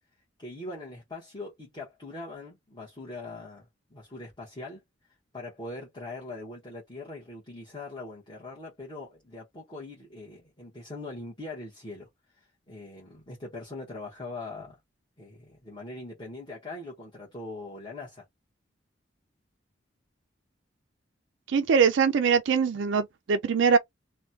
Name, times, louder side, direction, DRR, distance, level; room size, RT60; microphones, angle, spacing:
voice 1, 0.4-4.8 5.3-12.1 12.3-14.8 15.2-18.2, left 2 dB, 25° left, 1.1 m, -41 dB
voice 2, 21.5-23.8, right 6 dB, 65° right, 0.4 m, -22 dB
3.0 x 2.2 x 2.7 m
head